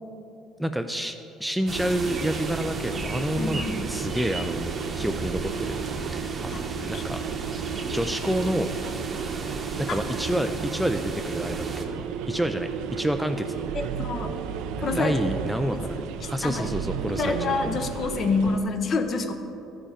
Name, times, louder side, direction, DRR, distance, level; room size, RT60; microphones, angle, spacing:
voice 1, 0.6-5.8 6.1-7.2 7.9-8.7 9.8-13.7 14.8-17.7, equal, 5° right, 7 dB, 0.3 m, -29 dB
sound 1, 1.7-11.9, right 3 dB, 25° right, 0.9 m, -35 dB
sound 2, 1.7-18.6, right 7 dB, 80° right, 0.5 m, -33 dB
voice 2, 3.4-3.9 6.5-6.6 6.9-7.0 13.7-14.3 14.8-15.1 15.9-16.0 16.4-16.6 17.1-19.3, left 4 dB, 40° left, 7 dB, 0.8 m, -27 dB
13.5 x 5.2 x 5.0 m, 2.8 s
cardioid pair, 125°, 0 cm